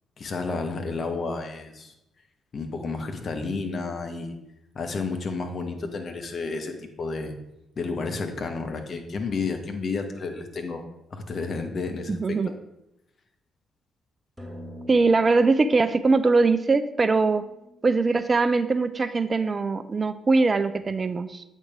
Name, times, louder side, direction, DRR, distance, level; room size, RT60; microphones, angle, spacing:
voice 1, 0.2-1.9 2.5-4.3 4.7-7.4 7.8-10.8 11.1-12.4, left 4 dB, 50° left, 5 dB, 1.0 m, -31 dB
voice 2, 12.1-12.5 14.9-17.5 17.8-21.4, right 3 dB, 35° right, 12 dB, 0.4 m, -22 dB
sound 1, 14.4-19.0, equal, 10° right, 1.9 m, -45 dB
8.3 x 3.7 x 4.9 m, 0.86 s
hypercardioid pair, 40°, 0 cm